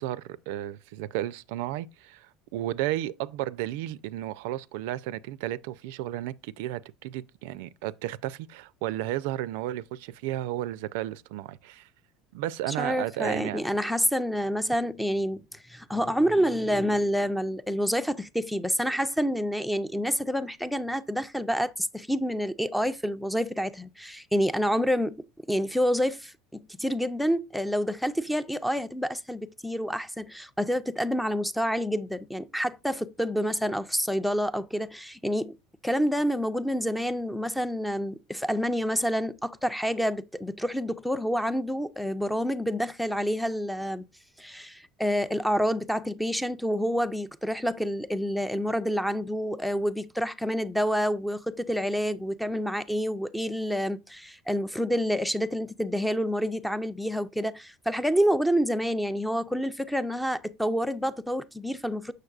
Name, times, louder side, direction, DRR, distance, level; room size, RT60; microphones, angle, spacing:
voice 1, 0.0-11.9 12.3-13.6, right 14 dB, 80° right, 0.3 m, -33 dB
voice 2, 12.8-35.6 35.8-44.0 44.4-62.1, equal, ahead, 0.3 m, -28 dB
6.5 x 6.5 x 2.4 m
cardioid pair, 155°, 0 cm